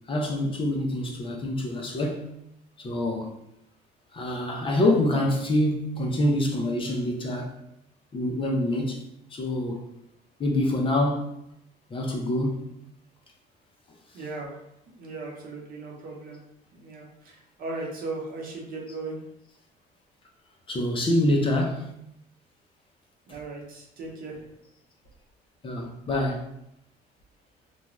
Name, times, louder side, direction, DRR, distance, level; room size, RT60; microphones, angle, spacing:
voice 1, 0.1-2.3 2.8-3.4 4.1-7.6 8.1-9.0 9.3-9.9 10.4-11.3 11.9-12.7 20.7-21.9 25.6-26.5, left 1 dB, 30° left, 0.5 m, -26 dB
voice 2, 14.1-16.4 16.7-19.2 23.3-24.5, right 3 dB, 60° right, 0.8 m, -37 dB
2.5 x 2.2 x 3.0 m
cardioid pair, 110°, 17 cm